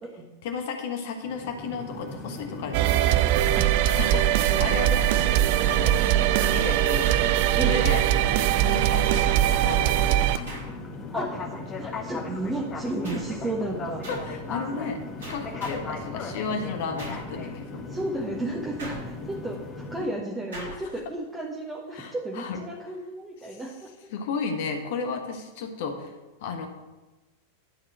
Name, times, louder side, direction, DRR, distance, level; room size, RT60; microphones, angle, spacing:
voice 1, 0.4-3.0 4.0-5.1 5.7-6.1 6.5-7.2 7.6-8.1 8.7-10.5 14.1-15.0 15.3-17.8 20.6-20.9 21.9-22.6 23.4-23.6 24.1-26.1 26.4-26.7, left 4 dB, 50° left, 6 dB, 1.3 m, -33 dB
sound 1, 1.2-20.1, left 3 dB, 25° left, 1.3 m, -37 dB
sound 2, 2.7-10.4, right 12 dB, 50° right, 0.4 m, -21 dB
sound 3, 3.8-4.7 6.4-7.9 9.1-9.7 10.5-11.1 13.0-13.5 14.0-14.4 15.2-16.0 17.0-17.4 18.8-19.4 20.5-20.9, right 1 dB, 65° right, 3.7 m, -42 dB
voice 2, 11.1-11.4 11.8-14.0 17.9-19.6 19.9-23.9, right 2 dB, 15° right, -3 dB, 1.3 m, -33 dB
11.5 x 4.3 x 7.4 m, 1.1 s
figure-of-eight pair, 90°, 0 cm